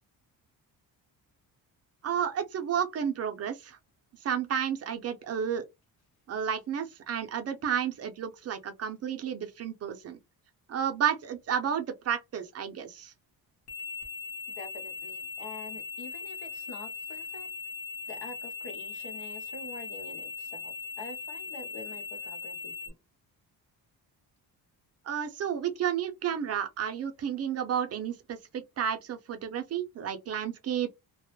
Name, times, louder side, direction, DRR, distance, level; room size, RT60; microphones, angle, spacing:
voice 1, 2.0-3.8 4.2-5.6 6.3-10.2 10.7-13.1 25.0-30.9, right 8 dB, 40° right, 0.5 m, -31 dB
sound 1, 13.7-22.9, left 5 dB, 40° left, 0.9 m, -39 dB
voice 2, 14.5-17.5 18.1-22.9, left 3 dB, 85° left, 0.9 m, -46 dB
2.2 x 2.0 x 2.9 m
cardioid pair, 145°, 37 cm